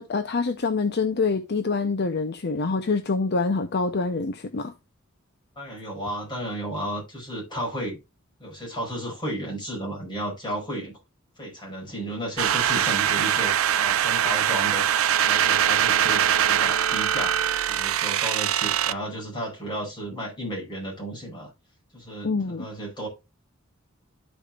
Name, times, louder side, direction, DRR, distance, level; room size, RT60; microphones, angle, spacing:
voice 1, 0.0-4.7 22.2-22.7, left 4 dB, 55° left, 0.7 m, -26 dB
voice 2, 5.6-8.0 8.4-10.9 11.4-21.5 21.9-23.1, right 1 dB, 25° left, 5.2 m, -33 dB
sound 1, 12.4-18.9, right 10 dB, 85° right, 0.4 m, -22 dB
13.0 x 5.0 x 2.4 m
head